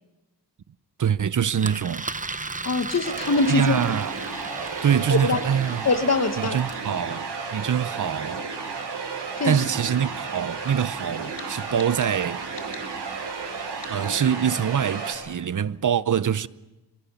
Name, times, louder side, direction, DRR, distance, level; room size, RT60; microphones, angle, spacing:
voice 1, 1.0-2.1 3.5-4.1 4.8-5.9 6.4-8.5 9.4-12.4 13.9-16.5, right 8 dB, 50° right, 0.8 m, -24 dB
Engine, 1.6-6.8, right 3 dB, 20° right, 0.8 m, -36 dB
voice 2, 2.6-3.8 5.1-5.4 5.8-6.6 9.4-9.6, left 3 dB, 40° left, 1.5 m, -23 dB
sound 1, 3.0-15.1, right 5 dB, 90° right, 7.7 m, -33 dB
sound 2, 11.4-11.5 11.8-12.1 12.6-12.9 13.8-14.0, left 5 dB, 75° left, 3.4 m, -42 dB
25.5 x 23.5 x 7.0 m
wide cardioid pair, 115°, 41 cm